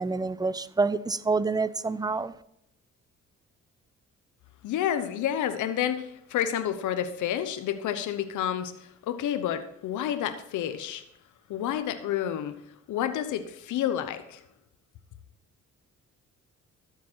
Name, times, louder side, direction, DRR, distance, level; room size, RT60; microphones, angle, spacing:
voice 1, 0.0-2.3, right 4 dB, 15° right, 0.5 m, -27 dB
voice 2, 4.6-11.0 11.5-12.5 12.9-14.4, left 10 dB, 80° left, 0.9 m, -29 dB
13.0 x 7.3 x 4.4 m
cardioid pair, 90°, 30 cm